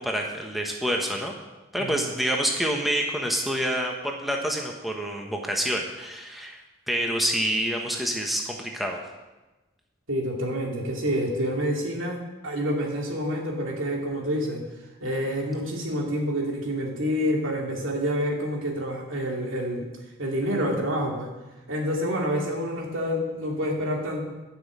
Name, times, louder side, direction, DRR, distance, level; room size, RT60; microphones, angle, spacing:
voice 1, 0.0-1.3 1.7-6.6 6.9-9.0, equal, ahead, 0 dB, 1.1 m, -27 dB
voice 2, 10.1-14.6 15.0-19.9 20.2-21.3 21.7-24.2, equal, 90° right, -1 dB, 2.6 m, -28 dB
11.5 x 6.2 x 8.5 m, 1.1 s
head